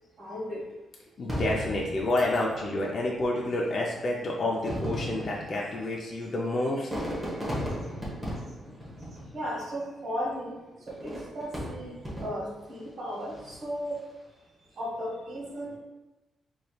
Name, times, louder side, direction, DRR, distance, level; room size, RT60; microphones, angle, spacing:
voice 1, 0.2-0.6 9.3-10.6 10.9-14.0 14.8-15.8, equal, 55° right, -5 dB, 1.5 m, -35 dB
voice 2, 1.2-6.9, left 1 dB, 40° left, -2 dB, 0.5 m, -29 dB
Fireworks, 1.3-2.9 3.8-3.9 4.5-9.8 10.9-12.7 13.2-13.7, equal, 15° right, 1.0 m, -36 dB
4.9 x 3.0 x 2.3 m, 1.1 s
cardioid pair, 130°, 0 cm